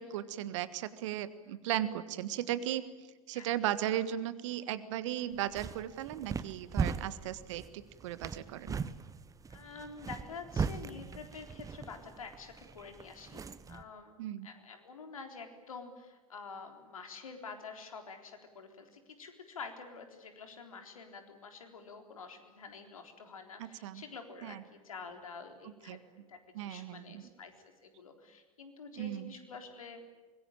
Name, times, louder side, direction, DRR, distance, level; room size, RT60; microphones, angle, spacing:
voice 1, 0.0-2.8 3.3-8.8 14.2-14.5 23.6-24.0 24.4-24.6 25.9-26.0 26.5-27.2 29.0-29.3, right 12 dB, 60° right, 14 dB, 1.6 m, -36 dB
sound 1, 5.3-13.8, right 5 dB, 20° right, 1.2 m, -39 dB
voice 2, 9.5-13.4 13.7-14.2 14.4-26.0 26.3-27.5 27.8-30.1, left 4 dB, 75° left, 5 dB, 3.8 m, -48 dB
25.0 x 22.0 x 8.9 m, 1.3 s
figure-of-eight pair, 80°, 18 cm